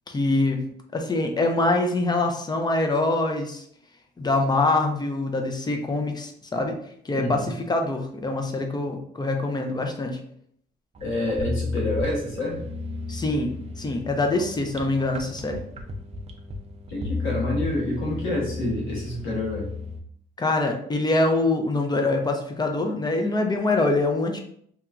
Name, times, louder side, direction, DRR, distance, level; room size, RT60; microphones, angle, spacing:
voice 1, 0.1-0.6 0.9-3.6 4.2-6.8 7.0-10.2 13.1-13.5 13.8-15.6 20.4-24.4, left 2 dB, 20° left, 4 dB, 0.4 m, -24 dB
voice 2, 7.1-7.5 11.0-12.6 16.9-19.7, left 1 dB, 85° left, -3 dB, 1.1 m, -27 dB
sound 1, 11.0-20.0, left 3 dB, 35° right, 0.4 m, -34 dB
2.9 x 2.2 x 2.4 m, 0.66 s
cardioid pair, 90°, 20 cm